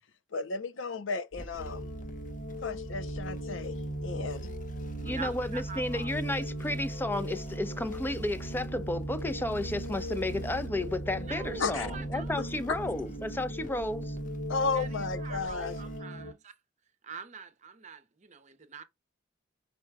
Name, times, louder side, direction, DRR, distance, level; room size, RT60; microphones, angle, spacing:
voice 1, 0.3-1.8 2.6-3.8 4.0-4.5 11.6-11.9 14.5-15.7, left 4 dB, 90° left, 0.6 m, -33 dB
sound 1, 1.3-16.0, right 1 dB, 45° left, 1.0 m, -46 dB
voice 2, 1.4-1.7 5.0-6.1 11.1-12.4 14.7-16.5 17.0-18.8, right 5 dB, 40° right, 0.7 m, -45 dB
sound 2, 1.6-16.3, right 1 dB, 65° left, 1.7 m, -38 dB
voice 3, 5.0-14.2, left 1 dB, 10° left, 0.5 m, -33 dB
5.2 x 2.2 x 4.6 m
head